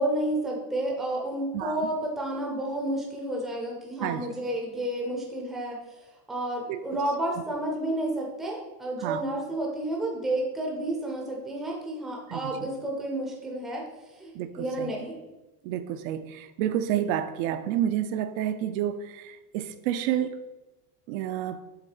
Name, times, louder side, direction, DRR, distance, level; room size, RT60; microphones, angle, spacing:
voice 1, 0.0-15.2, right 1 dB, ahead, -1 dB, 0.5 m, -31 dB
voice 2, 1.5-1.9 4.0-4.4 6.7-7.0 9.0-9.2 12.3-12.7 14.3-14.9 15.6-20.4 21.1-21.6, right 11 dB, 60° right, 10 dB, 0.5 m, -30 dB
7.3 x 3.1 x 4.8 m, 1.1 s
cardioid pair, 170°, 45 cm